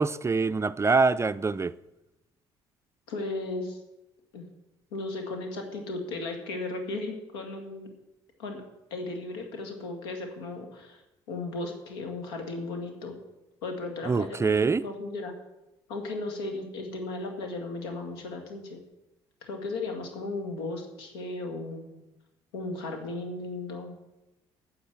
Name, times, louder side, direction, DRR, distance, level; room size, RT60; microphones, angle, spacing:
voice 1, 0.0-1.7 14.1-14.9, right 4 dB, 20° right, 0.4 m, -24 dB
voice 2, 3.1-3.8 4.3-4.5 4.9-7.9 8.4-8.6 8.9-11.0 11.3-13.2 13.6-15.4 15.9-18.8 19.4-22.0 22.5-24.0, left 2 dB, 85° left, 1.9 m, -35 dB
9.9 x 6.4 x 7.6 m
hypercardioid pair, 55°, 13 cm